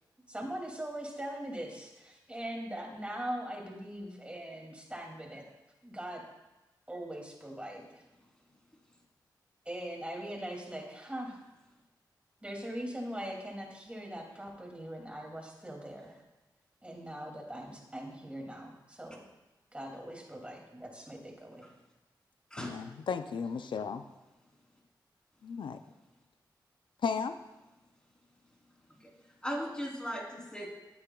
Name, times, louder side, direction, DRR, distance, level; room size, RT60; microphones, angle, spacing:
voice 1, 0.3-5.4 5.8-6.2 6.9-8.0 9.6-11.4 12.4-16.2 16.8-19.3 19.7-21.7, right 1 dB, 15° right, 0 dB, 2.5 m, -41 dB
voice 2, 22.6-24.0 25.4-25.8 27.0-27.4, left 6 dB, 85° left, 9 dB, 0.4 m, -34 dB
voice 3, 29.4-30.7, equal, 10° left, -2 dB, 3.3 m, -38 dB
13.5 x 8.8 x 2.3 m, 1.0 s
cardioid pair, 55°, 8 cm